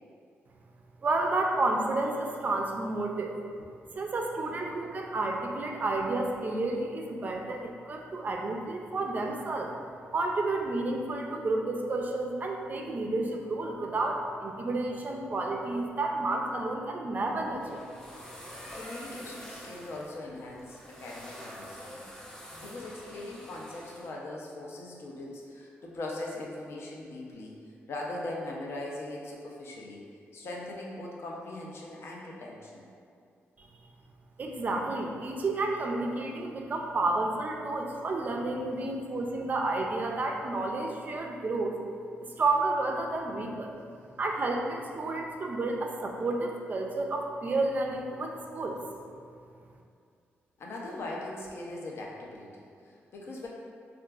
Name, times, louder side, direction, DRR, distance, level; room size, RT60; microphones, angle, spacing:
voice 1, 1.0-3.3 3.9-9.7 10.1-17.8 33.6-33.7 34.4-41.8 42.4-43.7 44.2-48.8, right 2 dB, 40° right, 1 dB, 0.4 m, -31 dB
sound 1, 17.3-24.1, equal, 10° left, 0.6 m, -46 dB
voice 2, 18.7-22.1 22.6-27.6 27.9-30.0 30.3-32.9 43.9-44.0 50.6-53.5, left 2 dB, 65° left, -3 dB, 0.5 m, -40 dB
3.7 x 2.4 x 2.3 m, 2.3 s
cardioid pair, 100°, 5 cm